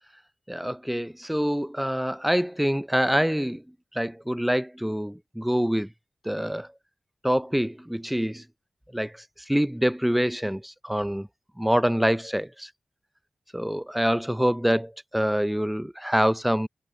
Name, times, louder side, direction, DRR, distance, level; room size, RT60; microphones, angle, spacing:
voice 1, 0.5-3.6 3.9-5.9 6.3-6.7 7.2-8.4 8.9-9.1 9.5-11.3 11.6-12.7 13.5-16.7, equal, 5° right, 0.4 m, -25 dB
cardioid pair, 65°, 3 cm